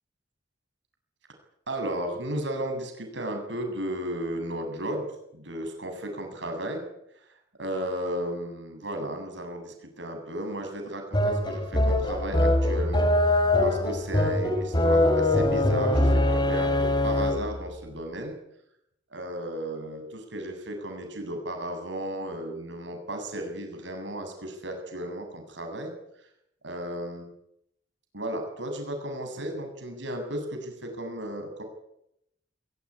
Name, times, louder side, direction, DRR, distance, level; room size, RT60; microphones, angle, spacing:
voice 1, 1.7-5.1 5.3-6.8 7.1-18.4 19.1-26.3 26.6-27.3 28.1-31.6, right 1 dB, 70° right, 4 dB, 7.7 m, -34 dB
sound 1, 11.1-17.6, left 1 dB, 25° left, 3.0 m, -23 dB
21.5 x 21.0 x 9.8 m, 0.80 s
head